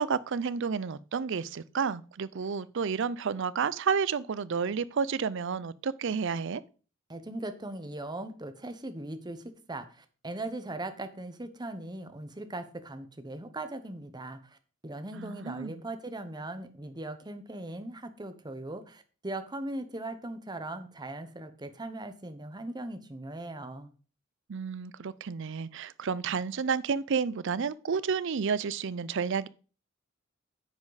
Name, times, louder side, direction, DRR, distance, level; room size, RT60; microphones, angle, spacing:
voice 1, 0.0-6.6 15.1-15.8 24.5-29.5, right 6 dB, 65° right, 0.5 m, -31 dB
voice 2, 7.1-14.6 14.8-23.9, right 2 dB, 20° right, 1.0 m, -39 dB
9.7 x 7.3 x 4.1 m
head